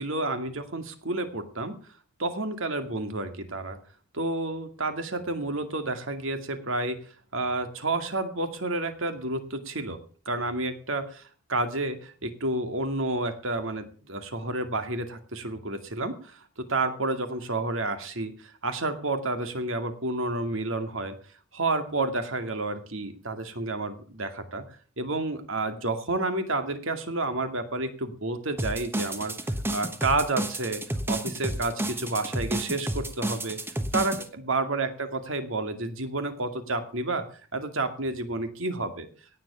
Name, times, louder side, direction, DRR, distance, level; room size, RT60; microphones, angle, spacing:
voice 1, 0.0-1.8 2.2-3.8 4.1-7.0 7.3-10.0 10.3-21.1 21.5-24.6 25.0-33.6 33.9-34.9 35.3-37.2 37.5-39.1, right 2 dB, 60° right, 8 dB, 2.3 m, -30 dB
sound 1, 28.6-34.3, right 1 dB, 10° right, 1.1 m, -31 dB
17.5 x 7.4 x 6.9 m, 0.42 s
head